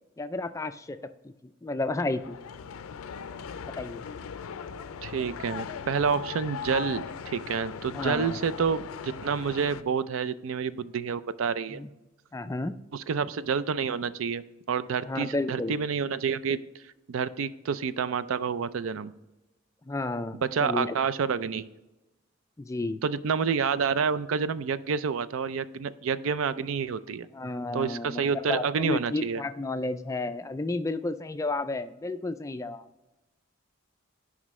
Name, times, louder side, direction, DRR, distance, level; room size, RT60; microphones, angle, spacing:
voice 1, 0.2-1.0 1.2-1.3 1.6-2.4 3.8-4.0 7.9-8.4 11.7-11.9 12.3-12.8 15.1-15.8 19.9-20.9 22.6-23.0 27.3-32.9, left 2 dB, 15° left, 10 dB, 0.3 m, -32 dB
sound 1, 2.1-9.8, left 6 dB, 90° left, 0.4 m, -39 dB
voice 2, 5.0-11.8 12.9-16.6 17.1-19.1 20.3-21.7 23.0-27.3 27.7-29.4, right 6 dB, 75° right, 15 dB, 0.4 m, -28 dB
11.0 x 5.0 x 3.1 m, 1.0 s
head